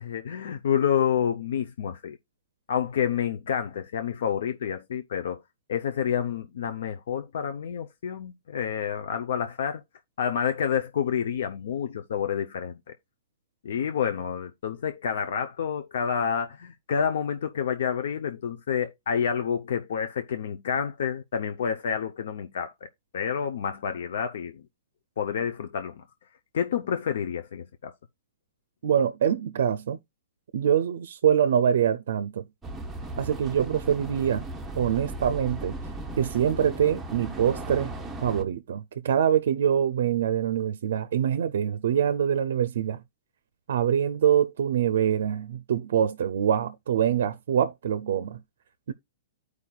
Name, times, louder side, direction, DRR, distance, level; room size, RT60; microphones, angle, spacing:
voice 1, 0.0-2.2 2.7-5.4 5.7-9.8 10.2-12.9 13.6-22.9 23.1-24.6 25.2-26.0 26.5-27.9, left 8 dB, 70° left, 0.6 m, -29 dB
voice 2, 28.8-30.0 30.5-32.4 33.2-34.4 34.8-35.8 36.2-38.0 38.2-43.0 43.7-48.4 48.9-49.0, right 9 dB, 70° right, 0.5 m, -24 dB
sound 1, 32.6-38.4, right 2 dB, 5° right, 0.7 m, -37 dB
13.0 x 4.8 x 2.3 m
hypercardioid pair, 170°, 0 cm